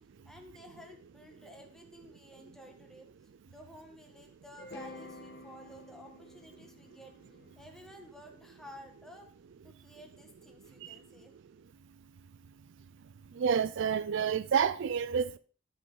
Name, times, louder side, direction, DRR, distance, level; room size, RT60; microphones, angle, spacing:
voice 1, 0.2-3.1 3.5-7.2 7.6-9.3 9.6-11.3, equal, ahead, 1.4 m, -53 dB
sound 1, 4.6-8.7, left 1 dB, 55° left, 1.6 m, -50 dB
voice 2, 13.3-15.4, right 7 dB, 60° right, 0.4 m, -29 dB
13.5 x 5.2 x 3.8 m
head